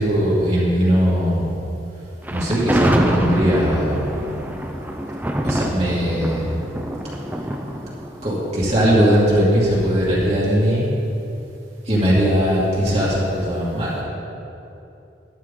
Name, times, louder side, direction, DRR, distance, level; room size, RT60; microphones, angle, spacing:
voice 1, 0.0-1.6 2.3-4.3 5.4-6.6 8.2-10.9 11.9-14.0, equal, 35° right, -8 dB, 2.5 m, -19 dB
Thunder, 2.2-9.4, right 1 dB, 10° right, 0.6 m, -25 dB
12.5 x 11.0 x 3.8 m, 2.9 s
head